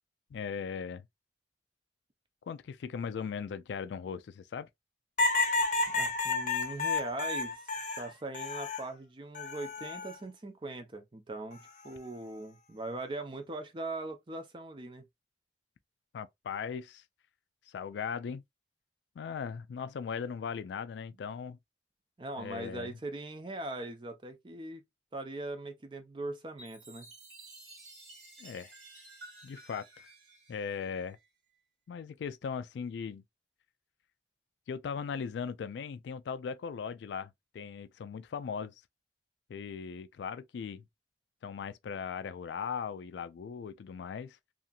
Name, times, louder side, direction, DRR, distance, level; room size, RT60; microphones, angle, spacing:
voice 1, 0.3-1.1 2.5-4.7 16.1-17.0 17.7-18.4 19.2-21.6 22.4-22.9 28.4-28.7 29.4-30.1 30.5-31.2 31.9-33.2 34.7-38.7 39.5-40.8 41.4-44.4, left 6 dB, 80° left, 0.3 m, -38 dB
sound 1, 5.2-8.9 9.3-10.1 11.5-11.9, left 3 dB, 45° left, 0.7 m, -31 dB
voice 2, 5.9-15.0 22.2-24.8 25.1-27.1, right 2 dB, 25° right, 0.5 m, -40 dB
Chime, 26.6-31.3, right 2 dB, 75° right, 1.3 m, -53 dB
2.8 x 2.5 x 2.2 m
head